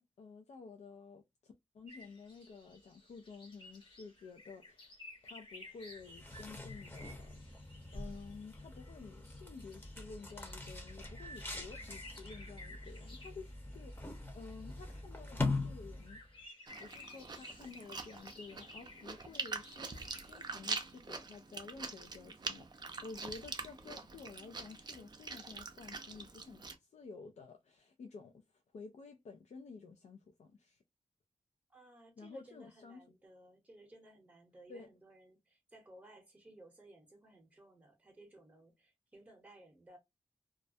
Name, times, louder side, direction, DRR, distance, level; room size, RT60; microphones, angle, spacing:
voice 1, 0.0-5.0 5.2-7.4 7.9-16.2 16.8-30.8 32.2-33.1 34.7-34.9, left 4 dB, 80° left, 0.4 m, -52 dB
sound 1, 1.9-21.0, left 1 dB, 50° left, 1.1 m, -56 dB
sound 2, 6.0-16.3, left 3 dB, 20° left, 0.8 m, -43 dB
Chewing mastication, 16.7-26.8, right 4 dB, 40° right, 0.4 m, -44 dB
voice 2, 31.7-40.0, right 1 dB, 15° right, 0.8 m, -58 dB
2.3 x 2.1 x 2.5 m
wide cardioid pair, 90°, 11 cm